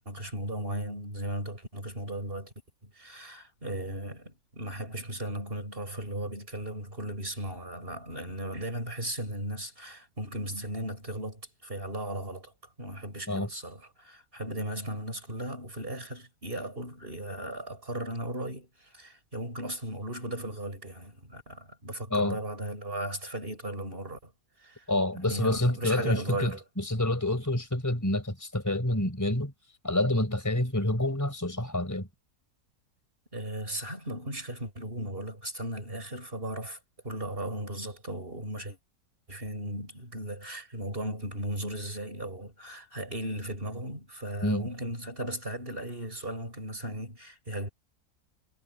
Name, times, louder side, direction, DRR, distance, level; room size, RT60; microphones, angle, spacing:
voice 1, 0.0-2.5 2.8-12.5 12.8-24.3 24.6-24.9 25.2-26.6 33.3-36.8 37.0-38.8 39.3-47.7, right 1 dB, 35° right, 7.6 m, -36 dB
voice 2, 24.9-29.5 29.8-32.1 44.4-44.7, left 1 dB, 10° left, 4.4 m, -28 dB
omnidirectional pair, 1.6 m